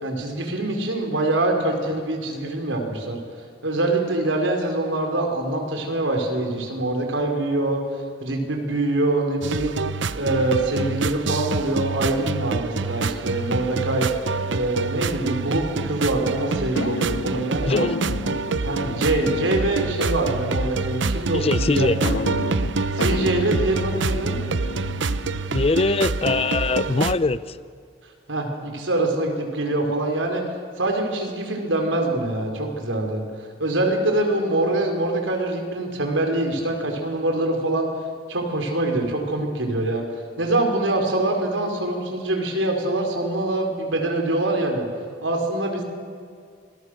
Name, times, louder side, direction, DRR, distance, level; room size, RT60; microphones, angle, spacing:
voice 1, 0.0-3.2 3.6-7.8 8.2-9.8 10.2-14.1 14.5-17.9 18.6-21.9 22.9-24.4 28.3-30.4 30.8-37.9 38.3-40.0 40.4-44.8 45.2-45.8, right 2 dB, 90° right, 4.7 m, -24 dB
sound 1, 9.4-27.1, right 4 dB, 70° right, 0.8 m, -26 dB
sound 2, 16.8-20.5 22.0-25.6, left 3 dB, 75° left, 0.6 m, -32 dB
voice 2, 21.3-22.0 25.5-27.6, left 3 dB, 30° left, 0.6 m, -22 dB
27.0 x 21.5 x 6.5 m
head